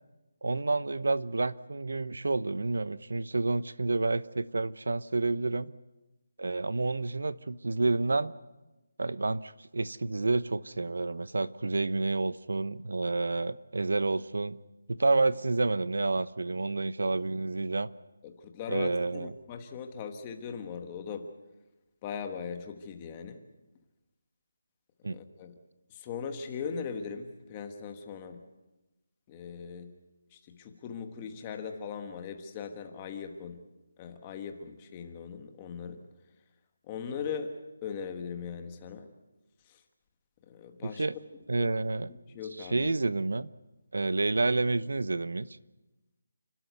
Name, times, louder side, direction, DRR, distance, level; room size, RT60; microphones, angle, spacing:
voice 1, 0.4-5.7 6.4-8.3 9.0-14.6 14.9-17.9 18.7-19.3 25.0-25.2 40.8-41.1 41.5-42.1 42.6-43.5 43.9-45.5, right 3 dB, 90° right, 16 dB, 0.9 m, -29 dB
voice 2, 18.2-21.3 22.0-23.4 25.0-25.5 25.9-28.4 29.3-29.9 30.3-33.6 34.0-36.0 36.9-37.5 37.8-39.1 39.7-39.8 40.5-41.1 41.6-41.7 42.3-42.9, left 6 dB, 15° left, 6 dB, 1.3 m, -39 dB
29.5 x 12.5 x 9.4 m, 1.0 s
hypercardioid pair, 180°, 0 cm